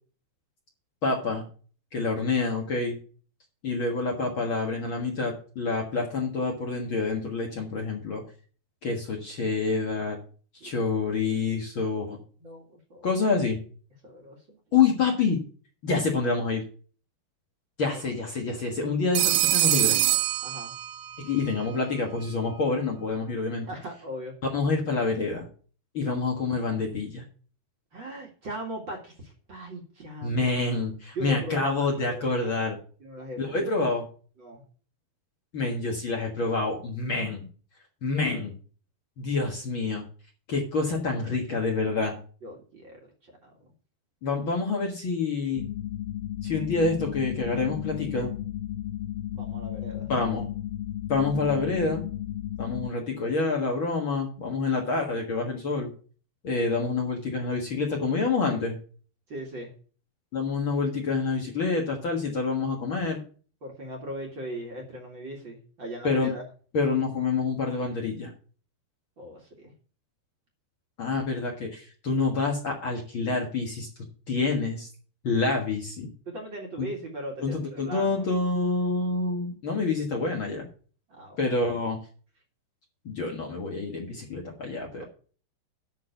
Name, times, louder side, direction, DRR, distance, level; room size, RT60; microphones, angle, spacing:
voice 1, 1.0-1.4 1.9-3.0 3.6-8.2 8.8-10.2 10.6-12.2 13.0-13.6 14.7-15.4 15.8-16.6 17.8-20.0 21.2-23.7 24.5-25.5 25.9-27.2 30.2-32.8 33.4-34.0 35.5-37.4 38.0-38.5 39.2-40.0 40.5-42.1 44.2-45.7 46.4-48.3 50.1-50.5 51.1-52.0 52.6-55.9 56.4-58.8 60.3-63.2 66.0-66.3 66.7-68.3 71.0-73.9 74.3-74.9 75.2-76.1 76.8-76.9 77.4-80.7 81.4-82.0 83.0-85.0, left 4 dB, 70° left, 0 dB, 1.2 m, -27 dB
voice 2, 12.4-13.1 14.0-14.6 17.9-18.2 20.4-20.7 23.6-24.4 27.9-30.5 31.1-32.7 33.0-33.6 34.4-34.6 42.4-43.7 49.3-50.1 59.3-59.7 63.6-66.4 69.2-69.7 76.2-78.3 81.1-81.4 84.9-85.0, right 1 dB, 40° right, 0 dB, 1.8 m, -39 dB
Telephone, 19.1-21.2, right 16 dB, 75° right, 2.4 m, -24 dB
sound 1, 45.6-52.9, left 11 dB, 85° left, 2.2 m, -34 dB
12.0 x 4.1 x 7.9 m, 0.41 s
omnidirectional pair, 4.9 m